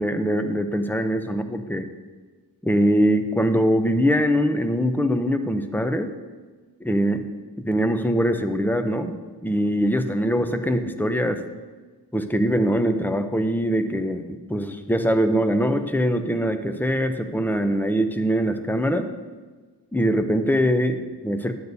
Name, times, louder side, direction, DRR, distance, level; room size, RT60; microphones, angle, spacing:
voice 1, 0.0-1.9 2.6-6.1 6.8-7.3 7.6-9.2 9.4-11.4 12.1-19.1 19.9-21.5, equal, 5° left, 8 dB, 0.5 m, -22 dB
10.0 x 9.2 x 2.7 m, 1.4 s
wide cardioid pair, 85°, 42 cm